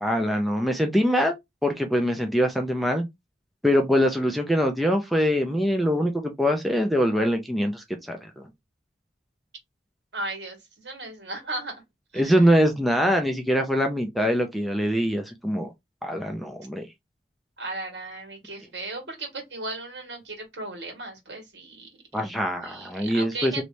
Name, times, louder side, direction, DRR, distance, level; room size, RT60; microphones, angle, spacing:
voice 1, 0.0-1.4 1.6-3.0 3.6-8.3 12.2-15.7 16.0-16.9 22.1-23.6, equal, ahead, 0.5 m, -23 dB
voice 2, 10.1-11.8 12.1-12.4 17.6-21.9 22.2-22.3 22.6-23.6, right 2 dB, 70° right, 1.8 m, -36 dB
3.2 x 3.1 x 2.6 m
head